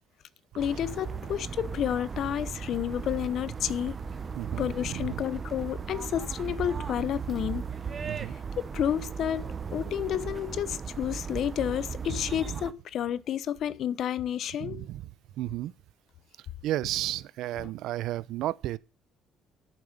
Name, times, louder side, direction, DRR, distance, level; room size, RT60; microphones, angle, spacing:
voice 1, 0.6-3.9 4.6-7.6 8.7-14.9 17.6-17.7, left 10 dB, 60° left, 0.9 m, -30 dB
sound 1, 0.6-12.7, right 6 dB, 35° right, 1.0 m, -37 dB
voice 2, 4.3-5.2 8.0-8.3 12.1-12.2 12.5-12.6 14.6-15.0 15.4-15.7 16.6-18.8, right 14 dB, 75° right, 0.6 m, -33 dB
13.0 x 7.6 x 5.2 m
supercardioid pair, 85°, 0 cm